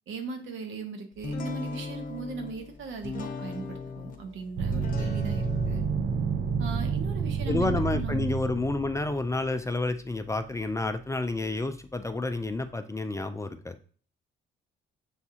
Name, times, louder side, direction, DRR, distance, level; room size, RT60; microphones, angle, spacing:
voice 1, 0.1-5.8 6.6-8.2, right 4 dB, 75° right, 5 dB, 1.0 m, -38 dB
sound 1, 1.2-12.7, left 3 dB, 45° left, 0.7 m, -40 dB
sound 2, 4.6-9.1, right 5 dB, 55° right, 0.4 m, -29 dB
voice 2, 7.5-13.8, left 2 dB, 15° left, 8 dB, 0.3 m, -30 dB
7.0 x 2.4 x 2.8 m, 0.43 s
cardioid pair, 90°, 20 cm